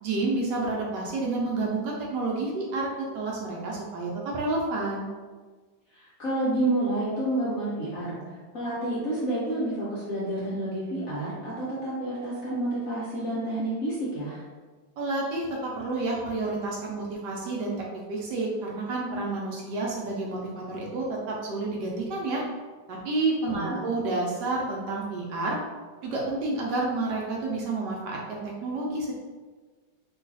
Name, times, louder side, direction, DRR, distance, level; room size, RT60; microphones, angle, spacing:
voice 1, 0.0-5.1 15.0-22.4 22.9-25.6 26.0-29.1, right 2 dB, 70° right, -3 dB, 1.1 m, -30 dB
voice 2, 5.9-8.2 8.5-14.4 23.6-23.7, right 1 dB, 60° left, -7 dB, 0.9 m, -29 dB
3.1 x 2.3 x 3.8 m, 1.4 s
omnidirectional pair, 2.1 m